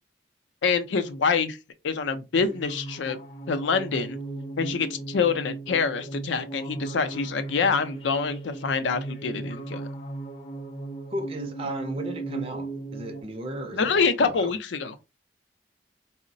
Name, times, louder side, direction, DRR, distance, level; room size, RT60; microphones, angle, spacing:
voice 1, 0.6-1.6 1.8-3.2 3.5-4.2 4.6-9.9 13.7-15.0, left 5 dB, 90° left, 0.5 m, -26 dB
sound 1, 2.4-13.2, right 2 dB, 30° left, 0.5 m, -37 dB
voice 2, 11.1-14.5, right 1 dB, 30° right, 0.4 m, -35 dB
3.8 x 2.0 x 2.5 m
head